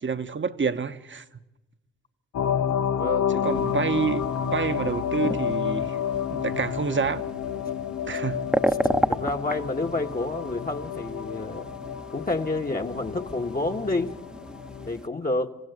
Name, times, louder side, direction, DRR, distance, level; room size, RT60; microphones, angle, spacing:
voice 1, 0.0-1.2 3.3-6.0 6.3-7.2 8.1-8.4, right 5 dB, 40° right, 1.1 m, -28 dB
sound 1, 2.3-14.9, left 8 dB, 85° left, 0.7 m, -30 dB
voice 2, 3.0-3.5 9.1-11.7 12.1-14.2 14.9-15.6, left 2 dB, 30° left, 1.3 m, -29 dB
sound 2, 3.4-15.1, equal, ahead, 0.9 m, -33 dB
27.0 x 16.0 x 8.0 m
cardioid pair, 55°, 29 cm